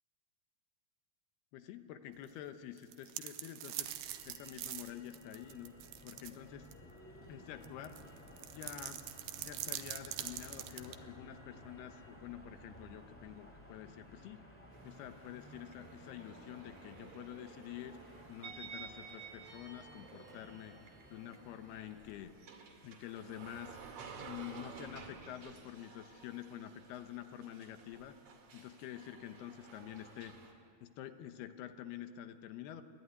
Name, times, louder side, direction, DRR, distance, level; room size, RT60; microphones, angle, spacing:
voice 1, 1.5-5.7 6.0-6.7 7.3-8.0 8.5-9.0 9.4-14.4 14.8-18.0 18.3-20.8 21.1-22.3 22.8-23.8 24.2-28.1 28.5-30.4 30.8-32.8, left 11 dB, 80° left, 9 dB, 2.9 m, -48 dB
sound 1, 2.8-6.3 6.7-6.8 7.6-11.0, right 13 dB, 80° right, 2.8 m, -43 dB
Motor vehicle (road), 3.8-22.3, equal, 5° left, 1.5 m, -56 dB
sound 2, 14.7-30.5, right 5 dB, 55° right, 3.4 m, -53 dB
29.0 x 11.5 x 9.4 m, 2.4 s
omnidirectional pair, 4.5 m